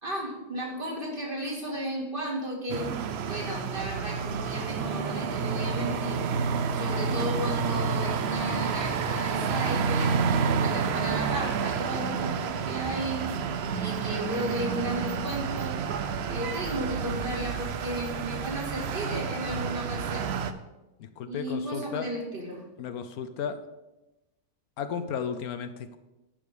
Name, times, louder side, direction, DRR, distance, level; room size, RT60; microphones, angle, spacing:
voice 1, 0.0-2.9 3.3-6.2 6.7-10.2 10.6-13.4 13.7-15.8 16.2-20.3 21.3-22.6, right 1 dB, 35° right, -2 dB, 2.4 m, -34 dB
sound 1, 2.7-20.5, right 6 dB, 60° right, 0.7 m, -29 dB
voice 2, 21.0-22.1 22.8-23.6 24.8-26.0, left 7 dB, 75° left, 10 dB, 1.1 m, -34 dB
11.0 x 5.1 x 6.7 m, 1.0 s
omnidirectional pair, 1.6 m